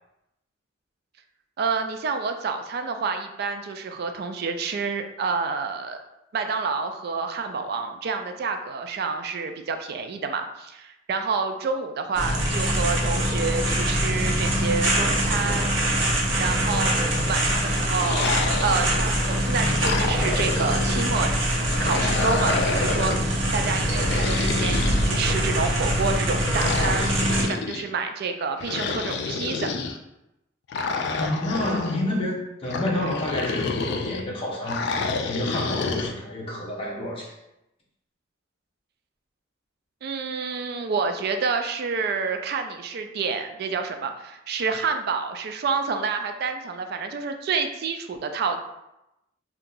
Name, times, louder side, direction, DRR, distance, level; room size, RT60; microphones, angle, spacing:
voice 1, 1.6-6.0 6.3-15.7 16.4-21.3 21.8-27.0 27.4-29.7 40.0-48.6, right 4 dB, 55° right, 6 dB, 0.3 m, -28 dB
sound 1, 12.1-27.4, equal, 80° right, 0.8 m, -24 dB
sound 2, 18.0-19.2 19.6-21.1 21.7-23.3 23.9-25.6 26.5-27.9 28.6-30.0 30.7-32.0 32.7-34.2 34.7-36.1, left 4 dB, 60° left, 0.3 m, -29 dB
voice 2, 31.2-34.9 35.2-37.3, left 1 dB, 30° left, -3 dB, 0.7 m, -29 dB
2.7 x 2.3 x 3.8 m, 0.89 s
head